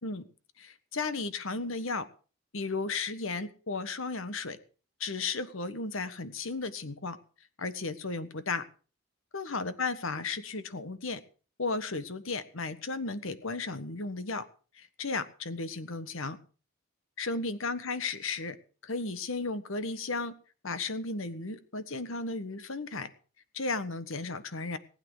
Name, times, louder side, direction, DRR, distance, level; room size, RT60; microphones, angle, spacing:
voice 1, 0.6-2.1 2.5-4.6 5.0-7.2 7.6-8.6 9.3-11.2 11.6-14.5 14.7-16.4 17.2-18.6 18.8-20.3 20.6-23.1 23.5-24.8, left 3 dB, 70° left, 12 dB, 1.4 m, -34 dB
19.0 x 9.0 x 6.2 m, 0.39 s
head